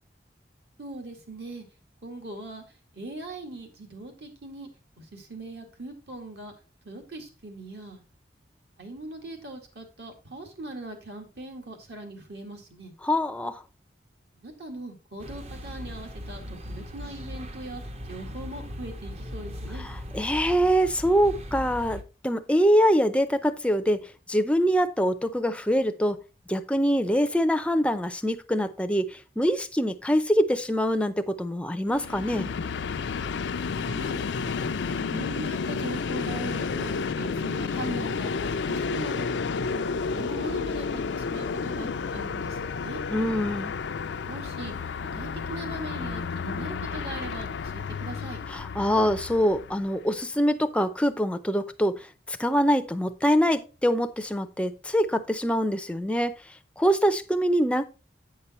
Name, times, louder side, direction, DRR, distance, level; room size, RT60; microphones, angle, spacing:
voice 1, 0.8-1.6 2.0-2.6 2.9-4.7 5.0-6.5 6.8-8.0 8.8-12.9 14.4-17.8 18.1-19.9 33.9-34.2 35.0-39.3 39.7-43.0 44.3-44.7 45.0-48.4, right 2 dB, 65° right, 2.2 m, -40 dB
voice 2, 13.0-13.6 19.7-24.0 24.3-26.2 26.5-32.5 43.1-43.7 48.5-56.4 56.8-57.8, equal, 5° left, 0.5 m, -24 dB
sound 1, 15.2-22.0, equal, 35° right, 0.7 m, -39 dB
Train, 31.9-50.0, left 5 dB, 80° left, 0.4 m, -31 dB
8.7 x 5.5 x 4.2 m
head